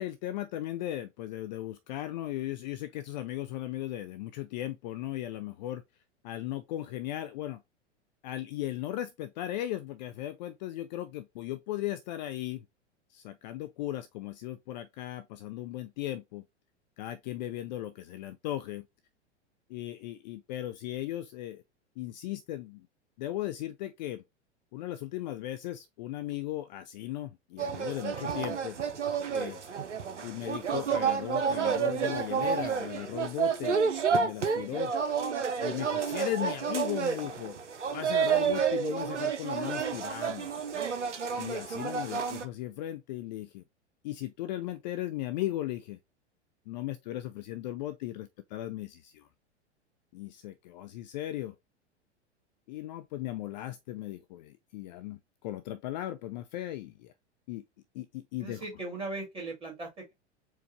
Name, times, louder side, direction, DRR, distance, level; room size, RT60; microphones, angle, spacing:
voice 1, 0.0-5.8 6.2-7.6 8.2-12.7 13.1-16.4 17.0-18.9 19.7-21.6 22.0-22.9 23.2-24.2 24.7-28.8 29.3-29.6 30.2-33.8 34.1-34.9 35.6-37.6 37.9-40.5 41.4-43.6 44.0-46.0 46.7-49.3 50.1-51.5 52.7-57.1 57.5-57.6 57.9-58.6, left 14 dB, 40° left, 0.4 m, -37 dB
sound 1, 27.6-42.4, right 6 dB, 80° right, 0.7 m, -30 dB
voice 2, 58.4-60.1, right 2 dB, 15° right, 2.1 m, -38 dB
4.5 x 2.5 x 2.9 m
figure-of-eight pair, 95°, 35 cm